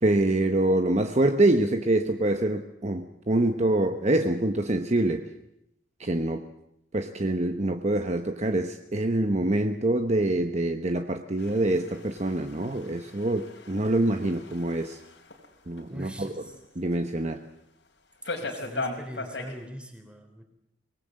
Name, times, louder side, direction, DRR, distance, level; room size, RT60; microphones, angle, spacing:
voice 1, 0.0-5.3 6.0-6.4 6.9-15.0 15.7-16.4 16.7-17.4, right 1 dB, 40° right, 7 dB, 1.1 m, -25 dB
sound 1, 11.4-15.4 15.8-15.9 16.5-16.6 16.9-17.0 18.2-19.6, left 2 dB, 85° left, 3.8 m, -38 dB
voice 2, 15.9-16.4 18.4-20.4, equal, 5° right, 5 dB, 3.5 m, -41 dB
24.5 x 19.0 x 7.7 m, 0.82 s
head